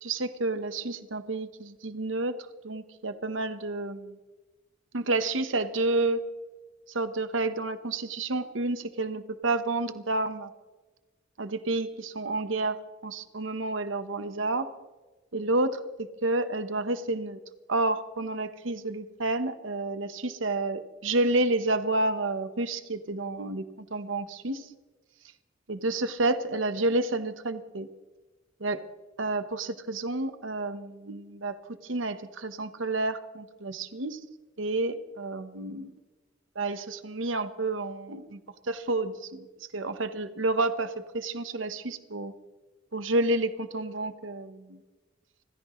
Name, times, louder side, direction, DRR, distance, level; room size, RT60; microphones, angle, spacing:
voice 1, 0.0-4.2 4.9-6.3 6.9-10.5 11.4-14.7 15.3-17.4 17.7-24.7 25.7-27.9 28.6-28.9 29.2-34.2 34.6-35.9 36.5-38.4 38.6-39.5 39.7-42.3 42.9-44.8, right 2 dB, 80° right, 11 dB, 1.1 m, -30 dB
30.0 x 14.5 x 3.2 m, 1.2 s
head